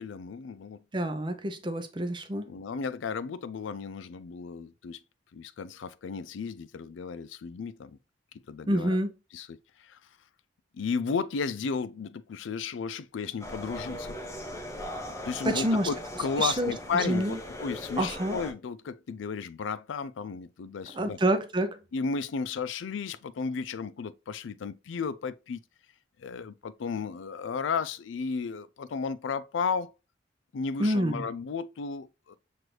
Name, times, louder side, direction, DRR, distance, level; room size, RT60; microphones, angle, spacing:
voice 1, 0.0-0.8 2.5-5.0 5.3-8.0 8.5-9.0 9.3-10.0 10.7-14.2 15.2-21.2 21.9-25.6 26.2-29.9 30.5-32.4, left 5 dB, 90° left, 0.4 m, -34 dB
voice 2, 0.9-2.5 8.7-9.1 15.4-15.9 16.4-17.4 18.0-18.4 20.9-21.8 30.8-31.3, right 1 dB, 25° right, 0.5 m, -27 dB
sound 1, 13.4-18.5, left 1 dB, 15° left, 0.7 m, -39 dB
6.1 x 2.6 x 3.1 m
head